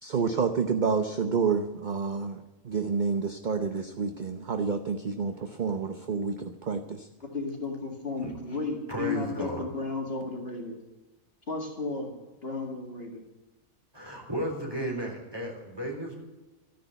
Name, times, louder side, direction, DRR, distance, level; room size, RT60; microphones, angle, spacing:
voice 1, 0.0-7.1, right 5 dB, 40° right, 7 dB, 0.8 m, -29 dB
voice 2, 7.2-10.8 11.5-12.1 12.4-13.2, left 3 dB, 45° left, 1 dB, 2.4 m, -33 dB
voice 3, 8.9-9.6 13.9-16.2, right 1 dB, 15° right, 0 dB, 3.8 m, -34 dB
13.5 x 9.9 x 8.1 m, 1.1 s
omnidirectional pair, 1.5 m